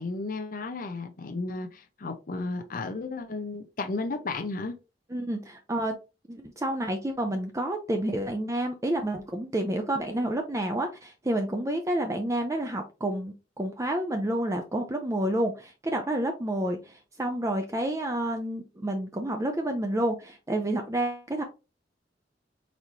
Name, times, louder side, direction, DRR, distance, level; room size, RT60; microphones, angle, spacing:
voice 1, 0.0-4.8, left 3 dB, 50° left, 0.6 m, -33 dB
voice 2, 5.1-6.0 6.3-21.4, right 1 dB, 20° right, 0.5 m, -29 dB
4.1 x 4.1 x 3.0 m
head